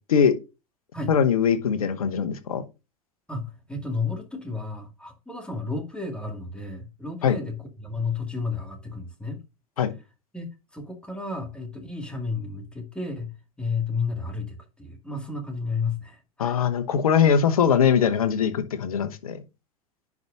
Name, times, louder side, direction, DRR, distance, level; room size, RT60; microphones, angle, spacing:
voice 1, 1.1-2.6 7.2-7.4 9.8-9.9 16.4-19.4, left 7 dB, 75° left, 1.0 m, -21 dB
voice 2, 3.3-9.4 10.3-10.5 10.7-13.3 13.6-16.6, left 4 dB, 5° left, 2.1 m, -32 dB
10.5 x 4.7 x 2.6 m
hypercardioid pair, 85°, 18 cm